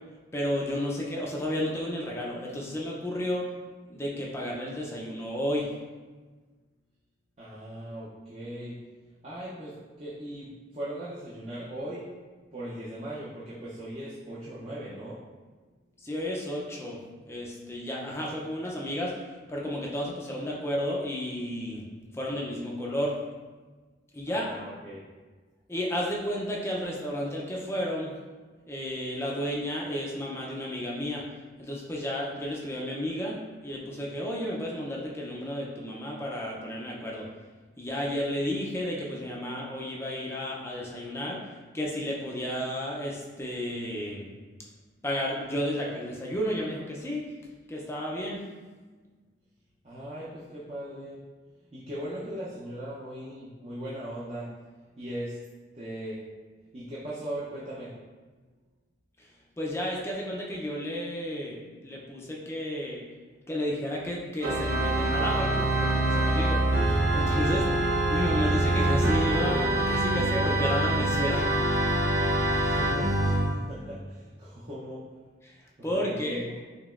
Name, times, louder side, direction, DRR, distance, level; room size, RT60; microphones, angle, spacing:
voice 1, 0.3-3.5 3.9-5.7 16.0-19.2 19.5-21.9 22.1-23.2 24.1-24.6 25.7-28.1 28.7-31.2 31.6-37.3 37.8-44.3 45.0-47.2 47.7-48.4 59.2-59.3 59.6-63.0 63.5-71.5 75.4-75.6 75.8-76.4, equal, 15° left, -3 dB, 0.5 m, -32 dB
voice 2, 7.4-8.8 9.2-12.1 12.5-15.2 24.3-25.0 49.8-51.2 51.7-54.5 55.0-55.4 55.7-56.2 56.7-57.9 72.6-75.0 75.8-76.5, right 1 dB, 35° right, -8 dB, 0.6 m, -39 dB
Organ, 64.4-73.5, right 1 dB, 80° right, 0.8 m, -25 dB
5.1 x 2.9 x 2.4 m, 1.4 s
head